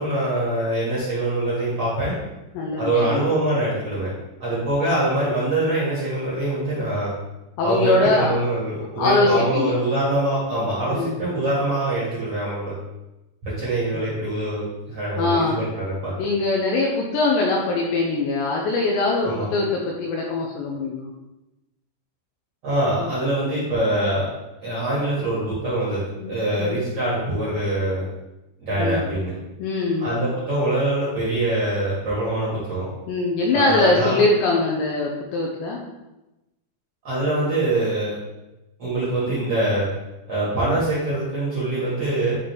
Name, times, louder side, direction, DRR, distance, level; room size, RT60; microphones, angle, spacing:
voice 1, 0.0-2.2 2.8-4.1 4.4-7.1 7.6-12.7 13.4-16.1 19.2-19.5 22.6-24.3 24.6-26.0 26.3-28.0 28.6-29.3 30.0-32.9 33.5-34.2 37.0-38.2 38.8-39.9 40.3-42.4, right 1 dB, 50° right, -9 dB, 2.0 m, -24 dB
voice 2, 2.5-3.2 4.8-5.1 7.6-8.3 9.0-9.7 10.9-11.2 13.9-14.1 15.2-15.6 16.2-21.1 23.0-23.1 26.2-26.3 26.6-26.7 28.8-29.1 29.6-30.1 33.1-35.8, left 2 dB, 80° left, -2 dB, 2.7 m, -22 dB
11.0 x 3.8 x 3.5 m, 0.98 s
omnidirectional pair, 5.8 m